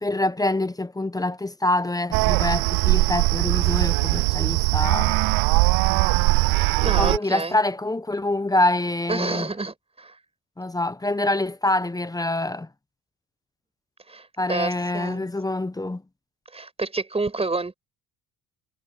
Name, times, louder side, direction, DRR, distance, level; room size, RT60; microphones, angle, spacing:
voice 1, 0.0-5.2 6.8-9.5 10.6-12.7 14.4-16.0, left 2 dB, 10° left, 0.8 m, -25 dB
sound 1, 2.1-7.2, right 25 dB, 75° right, 0.5 m, -20 dB
voice 2, 6.8-7.6 9.1-10.1 14.1-15.3 16.5-17.8, right 3 dB, 15° right, 5.2 m, -29 dB
cardioid pair, 105°, 38 cm